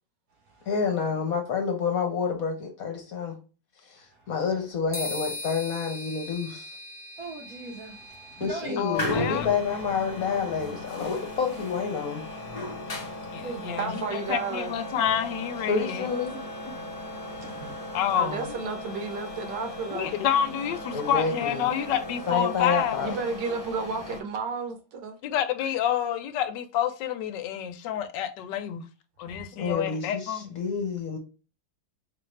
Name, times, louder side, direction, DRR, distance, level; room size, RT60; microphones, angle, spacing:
voice 1, 0.7-3.4 3.9-6.7 8.4-12.2 15.7-16.5 20.9-21.7 22.3-23.1 29.6-31.2, left 5 dB, 60° left, 1.2 m, -28 dB
sound 1, 4.9-12.6, left 1 dB, 5° right, 0.9 m, -42 dB
voice 2, 7.2-8.8 13.0-13.8 17.2-18.0 29.3-29.4, right 2 dB, 65° right, 1.1 m, -40 dB
voice 3, 8.8-9.5 13.3-16.1 17.9-18.5 19.9-23.0 25.2-28.9 29.2-30.5, left 9 dB, 85° left, 1.3 m, -28 dB
sound 2, 8.9-24.2, left 1 dB, 30° left, 0.7 m, -37 dB
voice 4, 13.8-14.7 18.1-20.1 23.0-25.1, right 5 dB, 80° right, 1.6 m, -32 dB
4.4 x 2.5 x 3.1 m
omnidirectional pair, 1.9 m